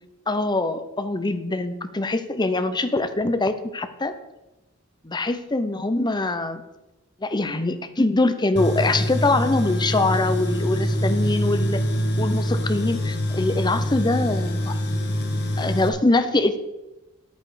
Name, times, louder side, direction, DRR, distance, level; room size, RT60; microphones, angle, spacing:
voice 1, 0.3-4.1 5.0-6.6 7.2-11.8 12.2-14.8 15.6-16.6, left 2 dB, 20° left, 11 dB, 0.7 m, -23 dB
Tools, 8.6-15.9, equal, 55° left, 1.5 m, -25 dB
10.5 x 9.3 x 5.0 m, 0.98 s
head